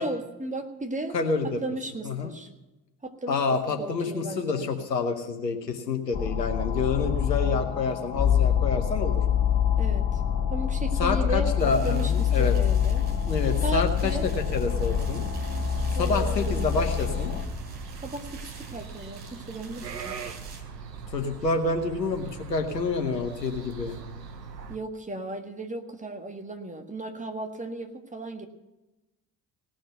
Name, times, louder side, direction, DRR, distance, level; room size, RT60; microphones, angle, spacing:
voice 1, 0.0-1.2 1.6-2.5 3.0-4.6 9.8-10.2 10.5-13.1 13.6-14.3 16.0-16.6 18.0-20.2 24.7-28.5, right 2 dB, 15° right, 5 dB, 1.6 m, -35 dB
voice 2, 1.1-1.6 2.0-2.3 3.3-9.2 11.0-12.5 13.3-15.2 15.9-17.3 21.1-24.0, left 4 dB, 85° left, 5 dB, 1.0 m, -28 dB
sound 1, 6.1-17.4, left 8 dB, 55° left, 1.6 m, -26 dB
sound 2, 11.6-20.6, right 3 dB, 55° right, 3.8 m, -42 dB
sound 3, 14.7-24.8, right 5 dB, 85° right, 0.7 m, -41 dB
17.5 x 6.5 x 9.1 m, 1.0 s
figure-of-eight pair, 45°, 49 cm